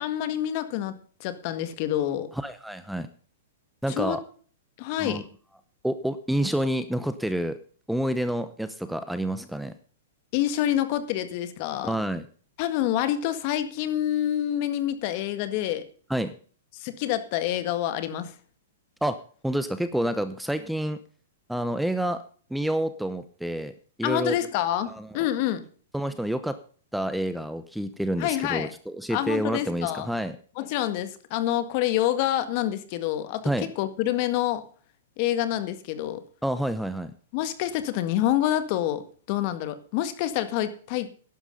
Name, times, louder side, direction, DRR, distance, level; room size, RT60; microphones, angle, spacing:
voice 1, 0.0-2.3 4.0-4.2 4.8-5.2 10.3-11.9 12.6-15.8 16.7-18.3 24.0-24.9 25.1-25.6 28.2-28.7 29.1-30.1 30.6-34.6 35.2-36.2 37.3-41.1, left 12 dB, 45° left, 11 dB, 1.7 m, -27 dB
voice 2, 2.3-3.1 3.8-4.2 5.0-5.2 5.8-7.6 7.9-9.7 11.8-12.3 16.1-16.3 19.0-19.2 19.4-21.0 21.5-22.2 22.5-23.7 24.0-24.4 24.9-25.1 25.9-26.6 26.9-30.4 33.4-33.7 36.4-37.1, right 1 dB, ahead, 11 dB, 0.8 m, -28 dB
11.5 x 11.0 x 5.3 m, 0.43 s
hypercardioid pair, 135°, 0 cm